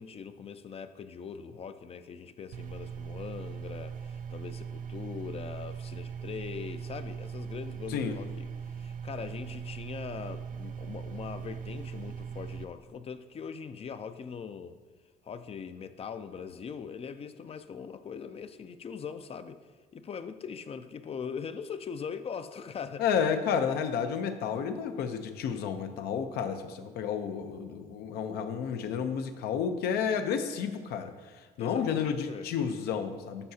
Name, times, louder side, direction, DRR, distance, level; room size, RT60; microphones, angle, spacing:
voice 1, 0.0-14.8 15.2-19.6 19.9-23.0 31.6-32.5, left 6 dB, 40° left, 10 dB, 0.4 m, -41 dB
sound 1, 2.5-12.6, right 7 dB, 55° right, 0.5 m, -40 dB
voice 2, 23.0-33.5, left 7 dB, 80° left, 8 dB, 0.6 m, -31 dB
12.5 x 4.7 x 2.8 m, 1.4 s
cardioid pair, 90°, 16 cm